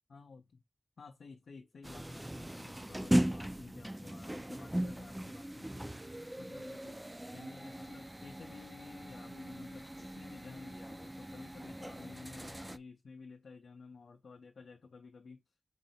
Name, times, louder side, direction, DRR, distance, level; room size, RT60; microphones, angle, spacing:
voice 1, 0.1-0.6 1.0-6.0 6.4-7.0 7.3-15.4, left 4 dB, 90° left, 0.5 m, -53 dB
sound 1, 1.8-12.8, right 1 dB, 10° right, 0.3 m, -38 dB
3.9 x 3.1 x 4.1 m
wide cardioid pair, 85°, 0 cm